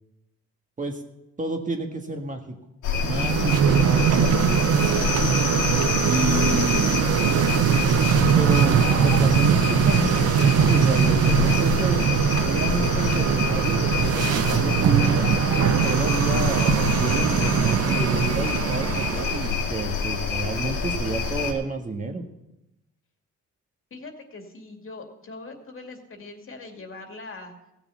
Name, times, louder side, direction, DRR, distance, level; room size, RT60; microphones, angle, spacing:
voice 1, 1.4-2.4 3.0-4.0 4.3-4.6 6.0-6.9 8.4-12.0 12.4-15.3 15.8-22.2, right 2 dB, 25° right, 3 dB, 1.7 m, -30 dB
Owl at night, 2.8-21.5, left 5 dB, 80° left, 2.2 m, -27 dB
sound 1, 3.0-19.6, right 8 dB, 55° right, 0.8 m, -21 dB
voice 2, 23.9-27.5, left 3 dB, 45° left, 3 dB, 2.5 m, -41 dB
16.0 x 6.9 x 7.0 m, 0.89 s
cardioid pair, 90°, 30 cm